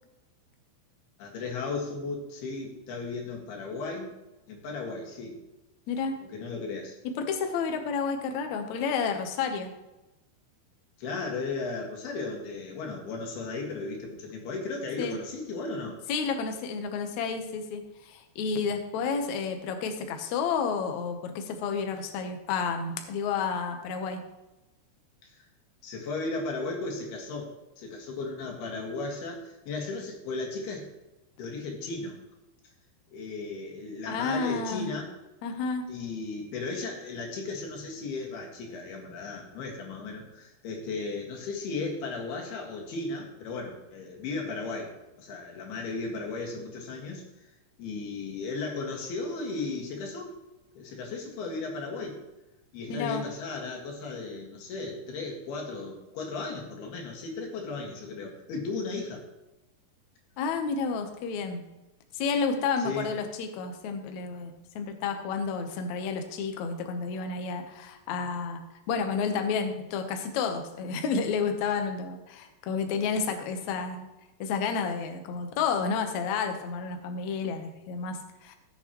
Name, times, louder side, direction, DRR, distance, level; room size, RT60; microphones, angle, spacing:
voice 1, 1.2-4.2 4.5-5.4 6.2-7.0 11.0-16.0 25.2-25.5 25.8-30.9 31.4-32.2 33.1-35.1 35.9-47.2 47.8-50.3 50.8-52.2 52.7-59.2 62.8-63.1, left 3 dB, 70° left, 0 dB, 3.7 m, -35 dB
voice 2, 5.9-6.2 7.0-9.7 15.0-15.2 16.1-24.2 34.1-34.9 35.4-35.8 52.9-53.2 60.4-61.6 62.1-68.6 68.9-74.1 74.4-78.6, left 5 dB, 90° left, 6 dB, 1.6 m, -30 dB
17.0 x 7.0 x 3.0 m, 0.99 s
omnidirectional pair, 4.8 m